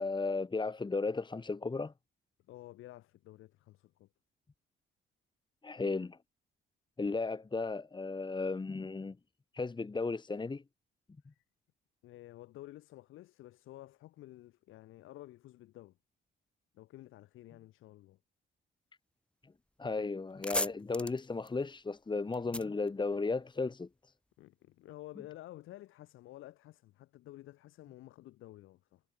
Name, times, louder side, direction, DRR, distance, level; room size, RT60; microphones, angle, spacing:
voice 1, 0.0-1.9 5.6-6.2 7.0-9.2 9.5-10.6 19.8-23.9, left 3 dB, 25° left, 1.8 m, -35 dB
voice 2, 2.5-4.1 11.3-11.4 12.0-16.0 16.7-18.2 24.4-29.0, left 15 dB, 90° left, 6.4 m, -52 dB
sound 1, 19.7-19.8 20.1-23.7, left 1 dB, 5° left, 6.1 m, -39 dB
cardioid pair, 90°, 20 cm